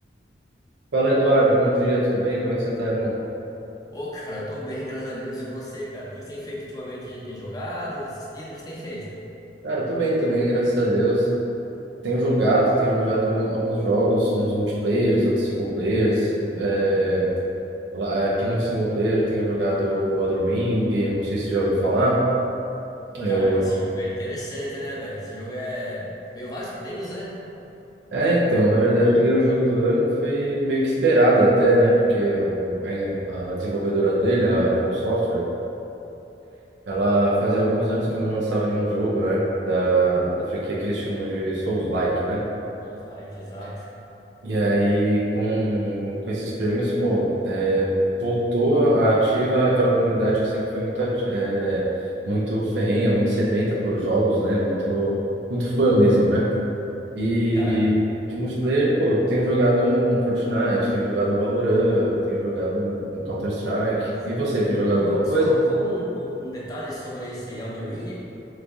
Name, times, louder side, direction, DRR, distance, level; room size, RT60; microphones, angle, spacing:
voice 1, 0.9-3.2 9.6-11.3 12.0-17.3 17.9-22.2 23.1-23.7 28.1-35.4 36.9-42.4 44.4-47.9 48.2-51.8 52.3-55.1 55.5-56.5 57.1-58.0 58.3-65.6, right 1 dB, 90° right, -7 dB, 0.7 m, -21 dB
voice 2, 3.9-9.1 23.2-27.3 42.8-43.9 57.5-57.8 63.9-64.2 65.0-68.2, equal, 20° left, -6 dB, 0.8 m, -34 dB
3.9 x 3.2 x 3.5 m, 2.9 s
head